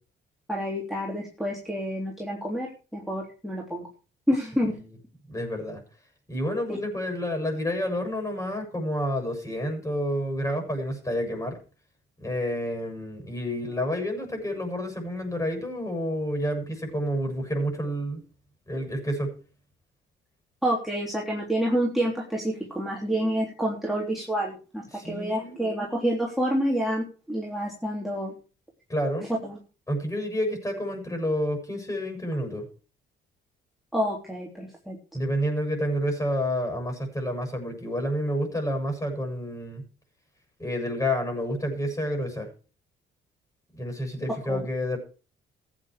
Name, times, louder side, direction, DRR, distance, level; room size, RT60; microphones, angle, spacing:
voice 1, 0.5-3.9 4.3-4.8 6.7-6.8 20.6-28.3 29.4-29.6 33.9-35.0 44.5-44.6, equal, ahead, -3 dB, 3.4 m, -28 dB
voice 2, 5.3-5.8 6.3-11.6 12.2-18.2 18.7-19.3 24.9-25.7 28.9-29.3 29.9-32.7 35.1-39.8 40.6-42.5 43.7-45.0, equal, 15° left, 3 dB, 7.5 m, -29 dB
15.0 x 9.2 x 5.0 m, 0.37 s
cardioid pair, 90°, 20 cm